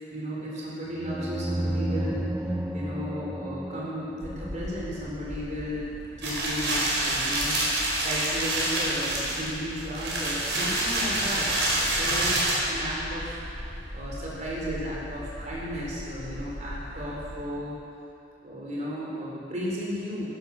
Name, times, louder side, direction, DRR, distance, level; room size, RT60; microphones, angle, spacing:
voice 1, 0.1-2.5 2.7-5.8 6.2-13.4 13.9-17.7 18.4-20.2, equal, 45° right, -6 dB, 4.0 m, -34 dB
sound 1, 1.0-5.5, right 1 dB, 10° right, 0.6 m, -32 dB
sound 2, 4.2-17.4, equal, 35° left, 2.4 m, -41 dB
sound 3, 6.2-12.6, right 1 dB, 80° right, 4.7 m, -27 dB
15.5 x 12.5 x 6.5 m, 2.7 s
head